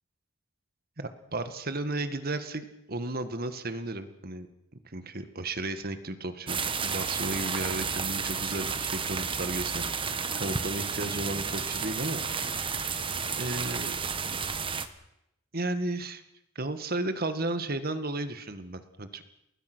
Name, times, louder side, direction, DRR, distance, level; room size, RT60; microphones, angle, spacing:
voice 1, 1.0-4.5 4.8-13.0 13.4-14.0 15.5-16.2 16.6-19.2, right 2 dB, 50° right, 10 dB, 1.9 m, -34 dB
sound 1, 6.5-14.9, right 5 dB, 25° right, 1.3 m, -32 dB
29.5 x 20.0 x 6.3 m, 0.82 s
head